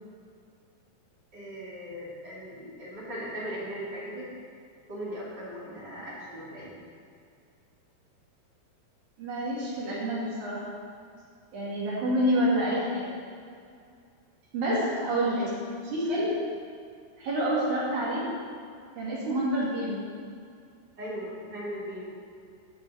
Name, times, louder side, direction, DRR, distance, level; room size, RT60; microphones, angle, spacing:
voice 1, 1.3-4.3 4.9-6.7 21.0-22.0, equal, 30° right, -8 dB, 2.8 m, -38 dB
voice 2, 9.2-10.7 11.5-13.0 14.5-15.5 15.8-16.4 17.2-18.2 19.0-20.0, equal, 55° right, -6 dB, 3.3 m, -28 dB
9.6 x 5.2 x 8.1 m, 2.3 s
omnidirectional pair, 4.7 m